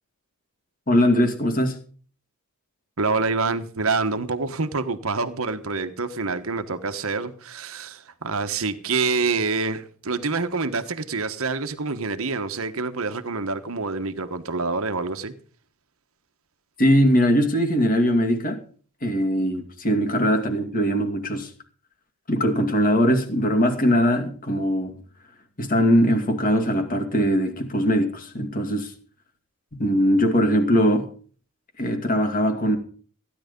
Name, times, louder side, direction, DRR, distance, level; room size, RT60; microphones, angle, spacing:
voice 1, 0.9-1.8 16.8-18.6 19.0-21.5 22.3-24.9 25.6-28.9 29.7-31.1 31.8-32.8, equal, 40° left, 2.3 m, -21 dB
voice 2, 3.0-15.3, right 4 dB, 65° right, 1.3 m, -26 dB
15.5 x 10.5 x 5.3 m
head